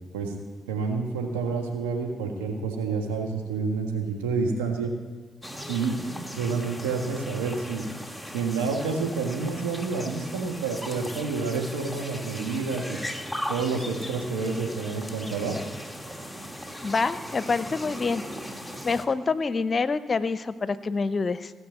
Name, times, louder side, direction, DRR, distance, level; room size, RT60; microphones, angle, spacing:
voice 1, 0.7-4.9 5.7-5.9 6.3-7.8 8.3-13.0 13.5-15.6, right 4 dB, 90° right, 2 dB, 1.5 m, -29 dB
sound 1, 5.4-19.1, equal, ahead, 1.7 m, -38 dB
voice 2, 16.8-18.2 18.8-21.5, left 4 dB, 45° left, 14 dB, 0.7 m, -26 dB
16.5 x 6.6 x 8.0 m, 1.3 s
hypercardioid pair, 40°, 0 cm